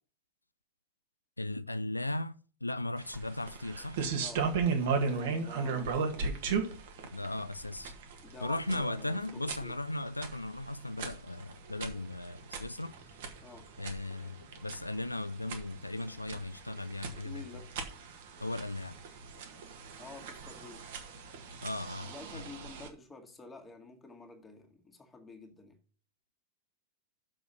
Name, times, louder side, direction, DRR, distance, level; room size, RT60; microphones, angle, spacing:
voice 1, 1.4-4.0 7.0-7.9 8.4-13.2 13.8-17.4 18.4-19.0 21.6-22.5, left 2 dB, 85° left, 0.3 m, -37 dB
sound 1, 3.0-22.9, right 5 dB, 55° right, 1.7 m, -37 dB
voice 2, 4.2-6.3 8.2-9.8 13.4-13.7 17.2-17.7 20.0-20.9 22.1-25.8, left 3 dB, 15° left, 2.1 m, -49 dB
6.9 x 6.5 x 6.4 m
figure-of-eight pair, 90°, 0 cm